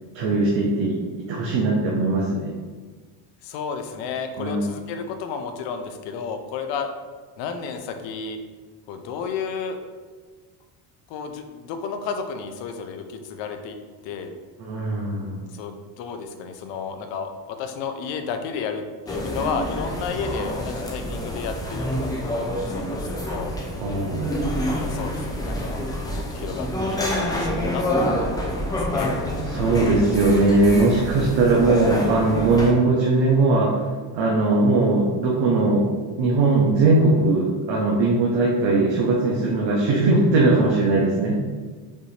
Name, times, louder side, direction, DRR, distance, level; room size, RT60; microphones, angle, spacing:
voice 1, 0.1-0.9 1.3-2.5 4.4-4.7 14.6-15.4 23.8-24.8 29.4-33.7 34.1-35.9 36.2-41.4, right 2 dB, 70° right, -3 dB, 0.8 m, -20 dB
voice 2, 3.4-6.9 7.4-8.4 8.9-9.8 11.1-13.8 14.0-14.4 15.5-21.9 22.3-23.5 24.8-25.8 26.1-29.1, left 5 dB, 75° left, 6 dB, 0.7 m, -32 dB
sound 1, 19.1-32.7, equal, 10° left, 0.5 m, -27 dB
5.3 x 2.7 x 3.2 m, 1.4 s
cardioid pair, 150°, 43 cm